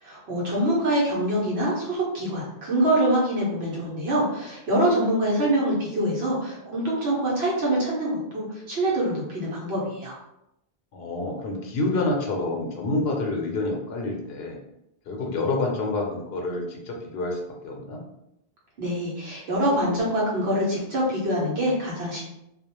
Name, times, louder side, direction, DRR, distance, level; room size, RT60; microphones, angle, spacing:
voice 1, 0.0-10.2 18.8-22.2, right 1 dB, 80° right, -5 dB, 1.0 m, -25 dB
voice 2, 10.9-14.6 15.1-18.0, left 2 dB, 75° left, 1 dB, 0.8 m, -28 dB
2.4 x 2.1 x 2.9 m, 0.83 s
omnidirectional pair, 1.0 m